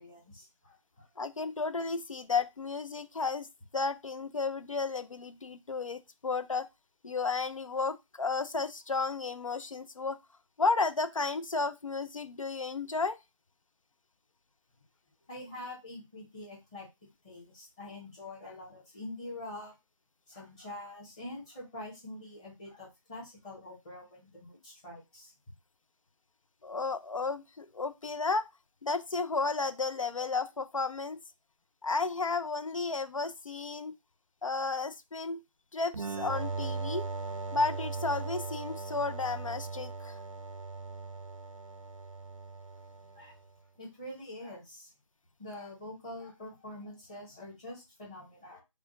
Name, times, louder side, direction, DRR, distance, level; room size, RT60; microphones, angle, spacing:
voice 1, 0.0-1.1 15.3-16.9 17.2-19.7 20.3-25.3 43.1-43.3 43.8-44.9 45.4-48.6, left 1 dB, 10° left, 1.0 m, -45 dB
voice 2, 1.2-3.5 3.7-6.7 7.0-10.2 10.6-13.2 26.6-28.5 28.8-31.2 31.8-33.9 34.4-35.4 35.7-37.0 37.5-40.2, left 4 dB, 75° left, 0.6 m, -33 dB
sound 1, 35.9-43.4, right 3 dB, 70° right, 0.5 m, -38 dB
4.9 x 2.2 x 3.8 m
figure-of-eight pair, 160°, 17 cm